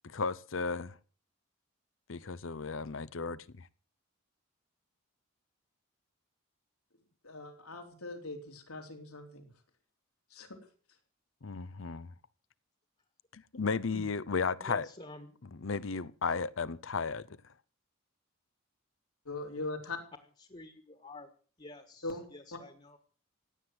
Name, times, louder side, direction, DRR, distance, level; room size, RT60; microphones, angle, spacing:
voice 1, 0.0-1.0 2.1-3.7 11.4-12.1 13.3-14.9 15.6-17.3, left 4 dB, 65° left, 0.7 m, -34 dB
voice 2, 7.2-9.5 10.3-10.6 19.3-20.0 22.0-22.2, left 2 dB, 85° left, 3.9 m, -41 dB
voice 3, 14.6-15.3 20.4-21.3 21.6-23.0, left 1 dB, 30° left, 1.6 m, -49 dB
16.5 x 9.7 x 7.8 m
head